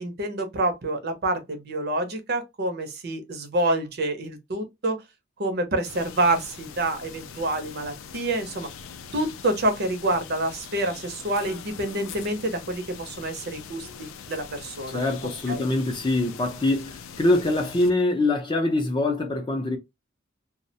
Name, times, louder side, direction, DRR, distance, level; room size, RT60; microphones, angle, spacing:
voice 1, 0.0-5.0 5.4-8.7 9.1-15.0 15.5-15.7, right 1 dB, 50° right, 0.6 m, -27 dB
sound 1, 5.8-17.9, left 6 dB, 85° left, 0.4 m, -42 dB
voice 2, 14.9-19.8, left 2 dB, 25° left, 0.5 m, -24 dB
2.3 x 2.1 x 2.7 m
head